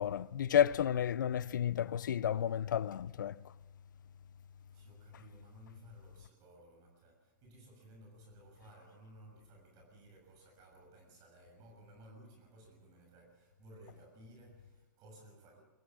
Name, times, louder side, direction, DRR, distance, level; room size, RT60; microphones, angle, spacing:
voice 1, 0.0-3.4, left 9 dB, 75° left, 0.6 m, -31 dB
voice 2, 4.4-15.6, right 1 dB, 40° right, 6.7 m, -58 dB
23.5 x 14.5 x 7.5 m
hypercardioid pair, 120°, 10 cm